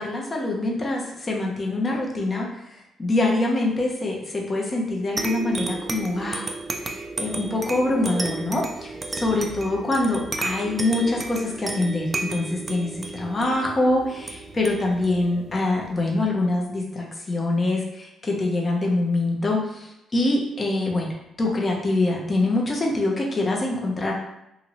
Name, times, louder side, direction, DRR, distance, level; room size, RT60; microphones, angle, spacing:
voice 1, 0.0-6.5 6.8-24.1, left 2 dB, 30° left, -1 dB, 0.7 m, -25 dB
sound 1, 5.2-16.2, right 3 dB, 30° right, 0.3 m, -33 dB
2.7 x 2.6 x 3.0 m, 0.86 s
cardioid pair, 90°, 0 cm